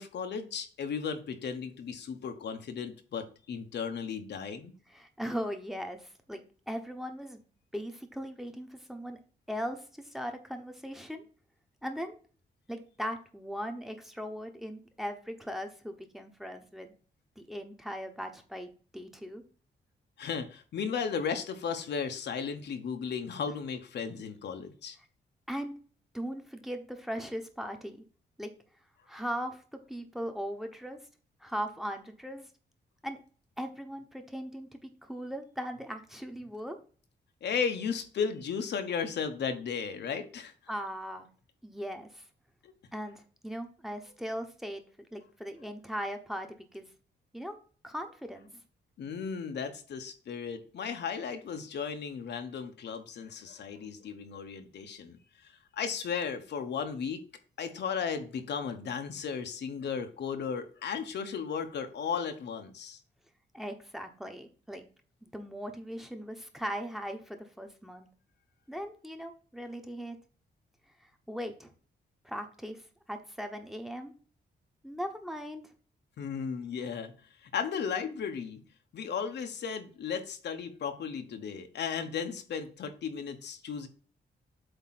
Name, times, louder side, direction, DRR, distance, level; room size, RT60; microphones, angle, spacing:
voice 1, 0.0-4.7 20.2-25.0 37.4-40.5 42.6-42.7 49.0-57.2 57.6-63.0 76.2-77.1 77.4-78.6 78.9-83.9, left 6 dB, 75° left, 7 dB, 1.1 m, -35 dB
voice 2, 4.9-7.4 7.7-9.2 9.5-11.2 11.8-12.1 12.7-16.9 17.4-19.4 25.5-25.7 26.1-28.0 28.4-28.5 29.1-29.6 29.9-31.0 31.4-32.5 33.0-33.2 33.6-36.8 40.7-41.3 41.6-42.2 42.9-44.8 45.1-46.9 47.3-47.6 47.8-48.6 63.5-64.9 65.2-68.1 68.7-70.2 71.0-71.7 72.2-72.8 73.1-74.1 74.8-75.6, equal, ahead, 5 dB, 1.1 m, -39 dB
8.0 x 3.0 x 5.9 m, 0.39 s
cardioid pair, 115°, 18 cm